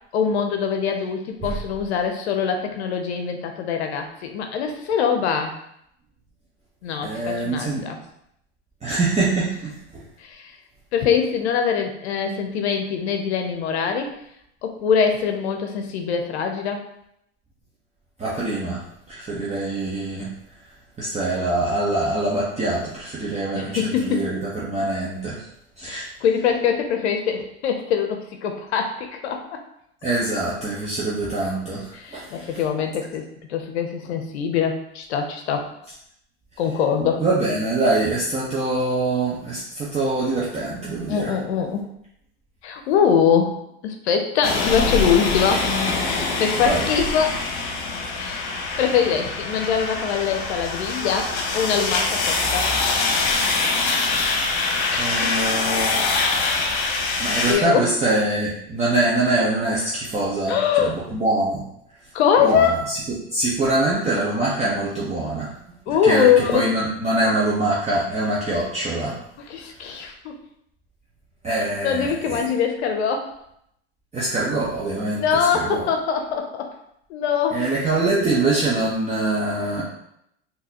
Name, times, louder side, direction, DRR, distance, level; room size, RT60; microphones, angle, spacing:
voice 1, 0.1-5.5 6.8-8.0 10.2-10.5 10.9-14.1 14.6-16.8 23.5-24.2 25.9-29.6 31.9-33.2 33.5-35.7 36.6-37.2 41.1-41.8 42.6-43.5 43.8-45.7 46.4-47.4 48.2-52.7 54.9-55.1 57.5-57.8 60.5-60.9 62.1-62.8 65.9-66.7 69.5-70.4 71.8-73.3 75.2-76.7 77.1-77.6, left 7 dB, 85° left, 5 dB, 0.6 m, -23 dB
voice 2, 7.0-7.9 8.8-10.0 18.2-20.3 21.0-25.5 25.8-26.0 30.0-32.6 37.2-41.3 46.6-46.9 55.0-56.0 56.5-56.6 57.2-61.6 62.4-65.5 65.9-66.3 66.5-69.2 69.8-70.1 71.4-72.5 74.1-75.9 77.5-79.8, right 2 dB, 20° right, -7 dB, 0.8 m, -24 dB
sound 1, 44.4-57.5, left 3 dB, 55° left, 0.9 m, -24 dB
3.8 x 2.8 x 2.8 m, 0.75 s
hypercardioid pair, 100°, 32 cm